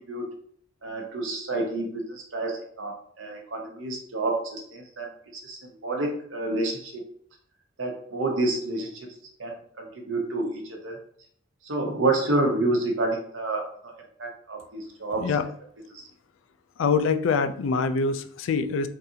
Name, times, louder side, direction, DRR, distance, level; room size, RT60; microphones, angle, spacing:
voice 1, 0.8-7.0 7.8-9.1 9.4-11.0 11.6-13.9 14.2-15.5 15.9-16.1, right 2 dB, 70° right, 1 dB, 0.9 m, -29 dB
voice 2, 16.8-18.9, left 5 dB, 75° left, 10 dB, 0.4 m, -24 dB
3.8 x 2.6 x 2.8 m, 0.62 s
head